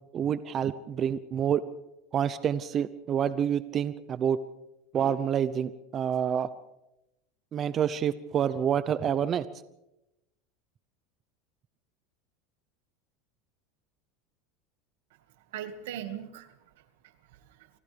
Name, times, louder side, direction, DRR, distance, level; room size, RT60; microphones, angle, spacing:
voice 1, 0.1-1.6 2.1-4.4 4.9-6.5 7.5-9.4, right 9 dB, 35° right, 14 dB, 0.8 m, -28 dB
voice 2, 15.5-17.8, right 10 dB, 80° right, 8 dB, 1.9 m, -41 dB
30.0 x 25.0 x 3.5 m, 0.92 s
supercardioid pair, 125°, 0 cm